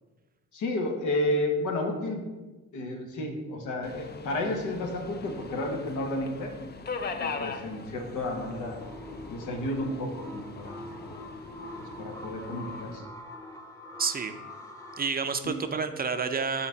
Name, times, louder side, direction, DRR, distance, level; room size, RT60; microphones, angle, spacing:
voice 1, 0.5-2.2 2.7-6.5 7.2-8.8 9.3-10.9 11.8-13.0 15.4-15.6, left 1 dB, 80° left, 2 dB, 1.2 m, -31 dB
Subway metro underground, 3.8-13.0, left 4 dB, 35° left, 0.5 m, -41 dB
sound 1, 8.2-15.1, equal, 10° left, 0.9 m, -44 dB
voice 2, 14.0-14.3 15.0-16.7, right 5 dB, 30° right, 8 dB, 0.5 m, -29 dB
5.9 x 4.0 x 5.8 m, 1.2 s
cardioid pair, 90°, 30 cm